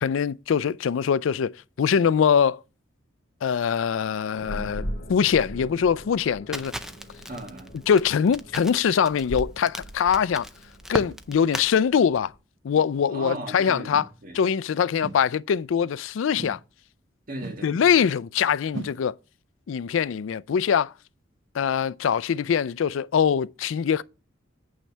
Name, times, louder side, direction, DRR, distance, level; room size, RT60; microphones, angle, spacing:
voice 1, 0.0-1.5 1.8-2.6 3.4-6.7 7.9-10.5 10.9-12.3 12.6-14.0 14.3-16.6 17.6-19.1 19.7-20.9 21.5-24.0, left 7 dB, 75° left, 0.4 m, -23 dB
sound 1, 4.4-12.4, equal, 50° left, 1.9 m, -40 dB
Crackle, 6.5-11.7, equal, 5° right, 0.5 m, -36 dB
voice 2, 7.3-7.7 13.1-14.4 14.7-14.8 17.3-17.9, right 1 dB, 45° right, 1.6 m, -37 dB
sound 2, 10.2-10.3 11.1-11.2 12.0-12.1 12.8-12.9 13.9-14.2 15.0-15.3 16.3-16.7 17.4-17.7 18.7-19.0, right 2 dB, 70° right, 1.0 m, -39 dB
8.9 x 3.3 x 6.6 m
head